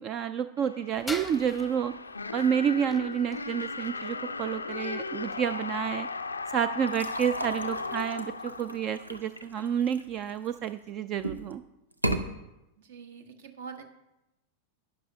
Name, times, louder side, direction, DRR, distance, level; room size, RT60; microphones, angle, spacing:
voice 1, 0.0-1.9 2.3-6.1 6.5-11.6, right 8 dB, 35° right, 13 dB, 0.3 m, -29 dB
sound 1, 0.6-9.4, left 4 dB, 80° left, 0.4 m, -37 dB
sound 2, 0.9-7.6, left 1 dB, ahead, 0.8 m, -46 dB
sound 3, 6.9-10.7 11.2-11.5 11.9-12.2, right 1 dB, 85° right, 0.7 m, -35 dB
voice 2, 12.8-13.8, right 6 dB, 60° right, 8 dB, 1.0 m, -44 dB
12.0 x 9.7 x 2.7 m, 0.95 s
figure-of-eight pair, 90°, 0 cm